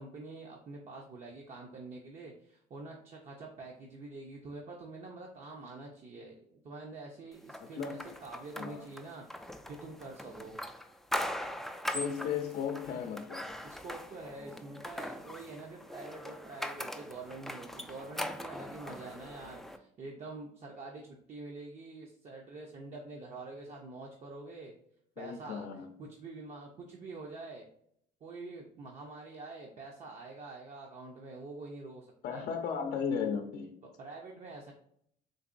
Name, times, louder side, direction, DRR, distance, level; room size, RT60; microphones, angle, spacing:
voice 1, 0.0-10.6 13.6-24.7 25.2-25.7 26.0-27.7 28.2-32.5 34.0-34.7, right 3 dB, 45° right, 0 dB, 0.6 m, -46 dB
sound 1, 7.5-19.8, left 1 dB, ahead, 0.3 m, -41 dB
voice 2, 11.9-13.5 25.2-25.9 32.2-33.8, left 7 dB, 65° left, 3 dB, 0.5 m, -35 dB
3.9 x 2.9 x 2.5 m, 0.69 s
cardioid pair, 110°, 17 cm